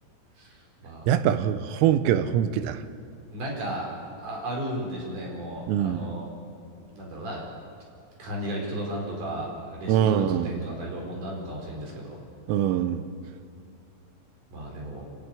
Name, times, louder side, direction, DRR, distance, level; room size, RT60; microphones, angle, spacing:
voice 1, 1.1-2.8 5.7-6.1 9.9-10.6 12.5-13.1, right 10 dB, 85° right, 11 dB, 3.4 m, -23 dB
voice 2, 3.3-3.9 4.2-6.3 6.9-7.5 8.2-12.2 14.5-15.1, right 1 dB, 40° right, -1 dB, 5.5 m, -34 dB
27.0 x 12.5 x 9.7 m, 2.4 s
omnidirectional pair, 6.0 m